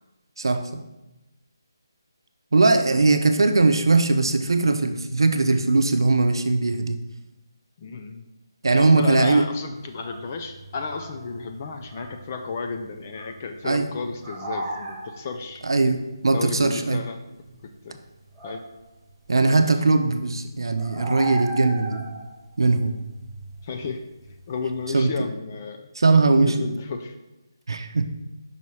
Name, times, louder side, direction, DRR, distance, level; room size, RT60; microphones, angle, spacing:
voice 1, 0.4-0.8 2.5-7.0 8.6-9.5 13.6-13.9 15.6-17.0 19.3-22.1 22.6-22.9 24.9-25.1 26.0-26.6 27.7-28.1, right 3 dB, 80° right, 7 dB, 0.6 m, -20 dB
voice 2, 7.8-8.2 8.7-15.6 16.3-17.2 17.6-18.0 18.4-18.6 19.5-19.6 23.6-24.1 24.5-25.9 26.4-27.2, left 4 dB, 25° left, 6 dB, 0.4 m, -33 dB
sound 1, 9.7-19.1 19.5-24.9, right 2 dB, 5° right, 0.8 m, -38 dB
5.5 x 3.1 x 5.5 m, 0.99 s
hypercardioid pair, 170°, 2 cm